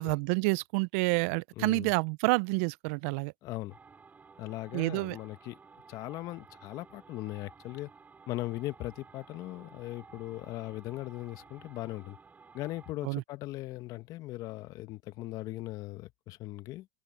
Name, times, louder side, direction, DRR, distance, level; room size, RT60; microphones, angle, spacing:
voice 1, 0.0-3.3 4.7-5.2 13.0-13.2, right 28 dB, 65° right, 0.5 m, -28 dB
voice 2, 1.6-1.9 3.4-3.8 4.4-5.6 5.9-7.9 8.3-12.2 12.5-16.9, left 17 dB, 50° left, 1.6 m, -39 dB
sound 1, 3.7-12.9, right 5 dB, 20° right, 6.1 m, -55 dB
open air
hypercardioid pair, 95°, 8 cm